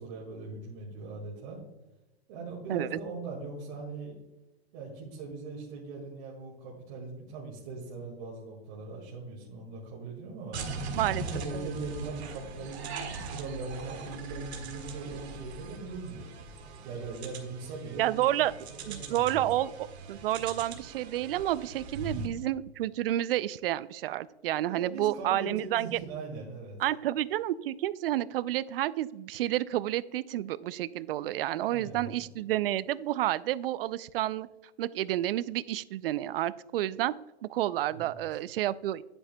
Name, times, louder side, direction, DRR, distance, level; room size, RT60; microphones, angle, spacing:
voice 1, 0.0-1.6 2.3-4.2 4.7-10.6 11.1-16.3 16.8-18.3 18.7-19.5 21.9-22.2 24.6-26.8 31.6-32.2 37.9-38.2, right 3 dB, 40° right, -4 dB, 2.0 m, -40 dB
sound 1, 10.5-22.3, right 3 dB, 75° right, 1.8 m, -41 dB
voice 2, 18.0-18.5 18.9-26.0 26.8-34.5 34.8-37.1 37.4-39.0, right 14 dB, 60° right, 17 dB, 0.4 m, -30 dB
9.8 x 8.7 x 2.2 m, 1.0 s
supercardioid pair, 165°, 33 cm